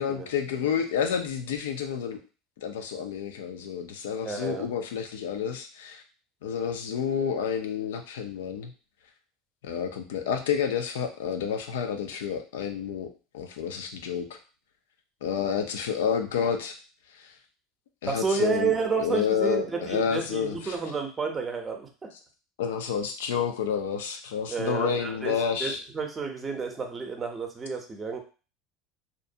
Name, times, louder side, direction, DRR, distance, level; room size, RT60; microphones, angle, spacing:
voice 1, 0.0-2.2 2.6-6.0 6.4-8.7 9.6-14.4 15.2-16.8 17.1-17.3 18.0-20.8 22.6-25.8, left 7 dB, 90° left, 6 dB, 0.4 m, -29 dB
voice 2, 4.2-4.7 18.1-22.1 24.5-25.3 25.6-28.2, right 5 dB, 25° right, 3 dB, 0.6 m, -30 dB
2.5 x 2.1 x 2.6 m, 0.35 s
supercardioid pair, 110°, 0 cm